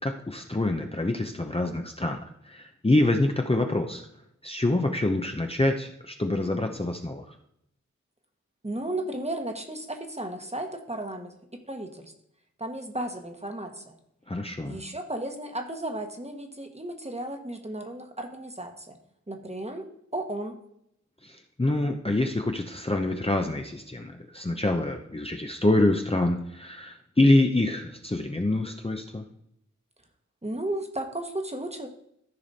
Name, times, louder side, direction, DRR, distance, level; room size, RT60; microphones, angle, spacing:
voice 1, 0.0-4.0 4.4-7.3 14.3-14.8 21.2-29.2, left 2 dB, 20° left, 3 dB, 0.8 m, -26 dB
voice 2, 8.6-11.3 11.7-12.1 12.6-13.9 14.6-19.0 19.3-19.9 20.1-20.6 30.4-31.9, right 1 dB, 20° right, 4 dB, 1.3 m, -34 dB
13.5 x 4.9 x 4.2 m, 0.75 s
wide cardioid pair, 50°, 30 cm